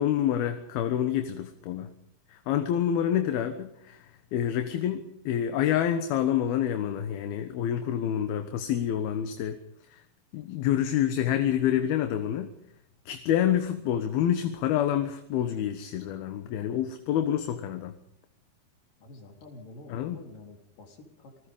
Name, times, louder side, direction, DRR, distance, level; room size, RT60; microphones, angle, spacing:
voice 1, 0.0-1.9 2.3-9.6 9.9-10.0 10.3-12.5 13.1-18.0 19.9-20.2, left 10 dB, 75° left, 8 dB, 3.1 m, -27 dB
voice 2, 19.0-21.5, left 2 dB, 60° left, 3 dB, 5.3 m, -48 dB
27.5 x 19.5 x 5.5 m, 0.75 s
omnidirectional pair, 4.5 m